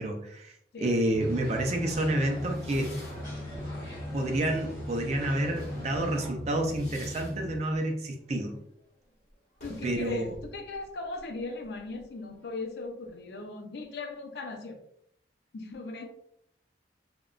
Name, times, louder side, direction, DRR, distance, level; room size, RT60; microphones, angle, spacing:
voice 1, 0.0-2.9 4.1-8.6 9.8-10.3, right 1 dB, 40° right, 2 dB, 0.4 m, -29 dB
sound 1, 1.1-7.6, left 1 dB, 65° right, 0.8 m, -38 dB
sound 2, 1.2-6.3, equal, 15° left, 1.3 m, -46 dB
sound 3, 2.4-4.9 5.3-12.9, left 1 dB, 40° left, 0.9 m, -51 dB
voice 2, 9.6-14.8 15.5-16.1, left 3 dB, 65° left, 4 dB, 0.4 m, -38 dB
2.7 x 2.1 x 2.4 m, 0.71 s
head